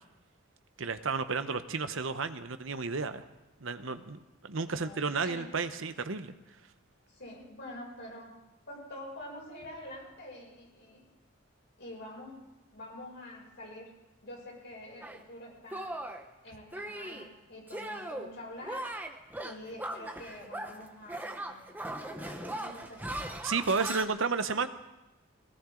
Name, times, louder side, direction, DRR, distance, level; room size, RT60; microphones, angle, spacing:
voice 1, 0.8-3.2 3.6-6.3 23.4-24.7, right 4 dB, 65° right, 10 dB, 0.9 m, -32 dB
voice 2, 4.7-5.5 7.1-8.3 8.7-11.0 11.8-12.4 12.7-13.9 14.2-16.0 16.4-18.8 19.4-21.7 22.0-23.2, left 1 dB, 55° left, -3 dB, 6.8 m, -46 dB
Shatter, 15.0-15.2 15.7-16.2 16.7-17.3 17.7-18.3 18.6-20.8 21.1-24.0, right 1 dB, 10° right, 0.9 m, -39 dB
20.0 x 17.5 x 3.9 m, 0.99 s
head